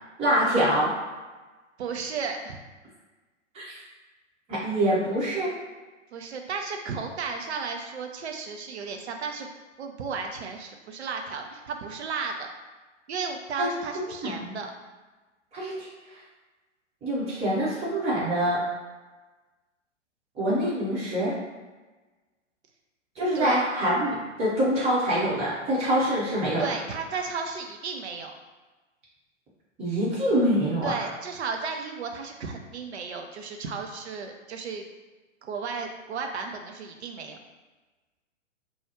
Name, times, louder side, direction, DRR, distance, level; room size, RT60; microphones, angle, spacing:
voice 1, 0.2-0.9 3.5-3.8 4.5-5.5 13.6-14.5 15.5-15.9 17.0-18.6 20.3-21.4 23.1-26.6 29.8-31.0, equal, 15° right, -8 dB, 1.2 m, -25 dB
voice 2, 1.8-2.6 6.1-9.5 9.8-12.5 13.1-14.7 23.3-23.6 26.6-28.3 30.8-34.9 35.4-37.4, right 5 dB, 60° right, 4 dB, 0.6 m, -34 dB
4.4 x 2.3 x 3.0 m, 1.2 s
figure-of-eight pair, 120°, 38 cm